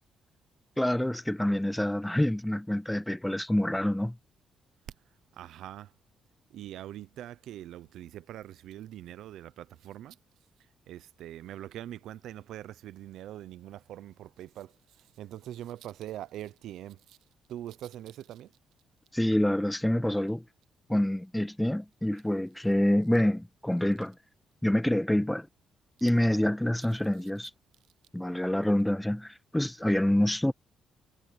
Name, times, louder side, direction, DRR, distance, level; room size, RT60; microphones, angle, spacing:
voice 1, 0.8-4.2 19.1-20.4 20.9-24.2 24.6-25.5 26.0-27.5 28.1-30.5, left 1 dB, 5° left, 0.3 m, -27 dB
voice 2, 5.3-5.9 6.5-10.2 10.9-17.2 17.5-18.5, right 12 dB, 80° right, 0.8 m, -43 dB
cardioid pair, 90°, 0 cm